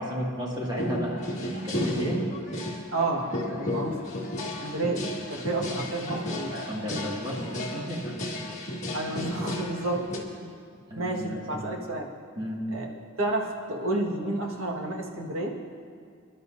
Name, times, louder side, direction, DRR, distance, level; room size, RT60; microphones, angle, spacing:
voice 1, 0.0-2.2 5.4-5.8 6.1-6.2 6.6-8.5 10.9-11.7 12.4-12.6, equal, 20° right, -4 dB, 2.2 m, -34 dB
sound 1, 0.8-10.2, left 1 dB, 35° left, 1.7 m, -33 dB
voice 2, 2.9-4.1 4.4-7.1 8.9-10.1 10.4-10.5 10.9-12.1 12.7-12.9 13.2-15.6, right 2 dB, 80° right, 0 dB, 1.7 m, -31 dB
25.0 x 11.5 x 2.7 m, 2.3 s
head